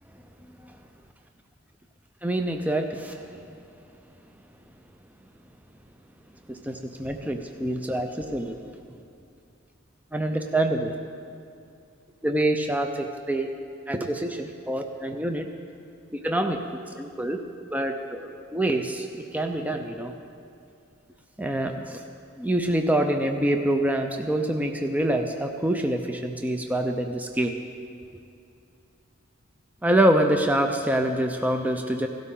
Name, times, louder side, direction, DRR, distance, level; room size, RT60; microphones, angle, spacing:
voice 1, 2.2-3.5 6.5-8.6 10.1-10.9 12.2-13.5 13.9-15.5 16.1-17.4 17.7-20.1 21.4-22.0 22.4-27.5 29.8-32.1, right 1 dB, 10° right, 4 dB, 0.5 m, -26 dB
16.5 x 12.5 x 3.8 m, 2.5 s
head